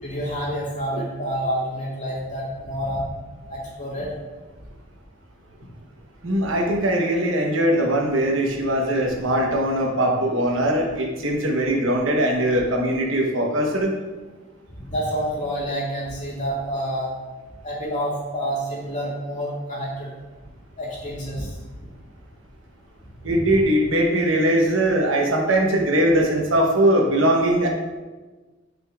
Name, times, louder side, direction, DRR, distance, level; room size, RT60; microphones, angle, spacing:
voice 1, 0.0-3.1 3.5-4.1 14.7-17.1 17.6-20.1 20.8-21.6 23.2-23.3, equal, 40° left, -5 dB, 2.1 m, -28 dB
voice 2, 6.2-13.9 23.2-27.7, right 1 dB, 90° right, 1 dB, 1.1 m, -21 dB
9.2 x 5.2 x 2.4 m, 1.3 s
head